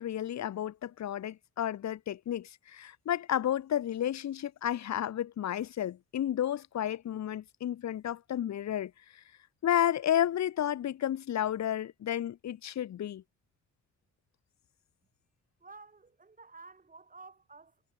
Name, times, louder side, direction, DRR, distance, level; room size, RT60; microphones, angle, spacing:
voice 1, 0.0-9.2 9.6-13.2, left 11 dB, 65° left, 2.1 m, -32 dB
voice 2, 15.6-17.8, right 4 dB, 25° right, 4.9 m, -52 dB
cardioid pair, 90°, 30 cm